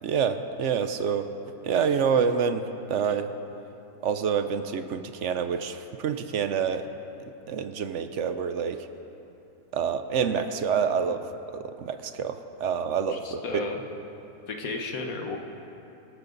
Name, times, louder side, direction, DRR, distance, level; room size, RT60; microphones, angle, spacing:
voice 1, 0.0-1.3 1.6-3.3 4.0-6.9 7.5-8.9 9.7-11.2 11.5-13.6, right 6 dB, 60° right, 9 dB, 1.0 m, -27 dB
voice 2, 13.1-13.8 14.5-15.4, left 3 dB, 70° left, 3 dB, 1.8 m, -33 dB
24.0 x 13.0 x 4.0 m, 2.9 s
omnidirectional pair, 1.6 m